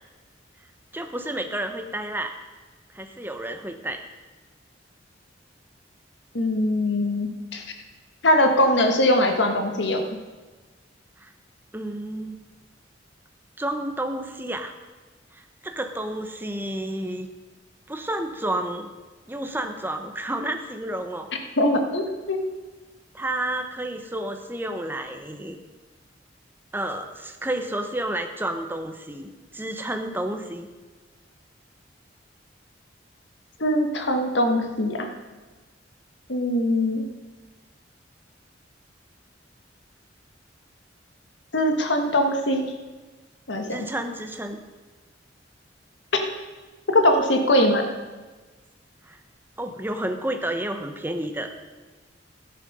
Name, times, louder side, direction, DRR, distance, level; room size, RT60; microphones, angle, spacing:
voice 1, 0.9-2.4 2.9-4.0 11.2-11.3 11.7-12.4 13.6-14.7 15.3-17.3 17.9-18.9 19.3-21.3 23.1-25.6 26.7-30.7 43.7-44.6 49.0-49.2 49.6-51.5, right 1 dB, 10° right, 6 dB, 0.9 m, -30 dB
voice 2, 6.3-7.6 8.2-10.1 21.6-22.4 33.6-35.1 36.3-37.0 41.5-42.6 43.5-43.8 46.1-46.2 46.9-47.9, left 1 dB, 70° left, 5 dB, 1.5 m, -21 dB
12.5 x 9.5 x 5.5 m, 1.3 s
head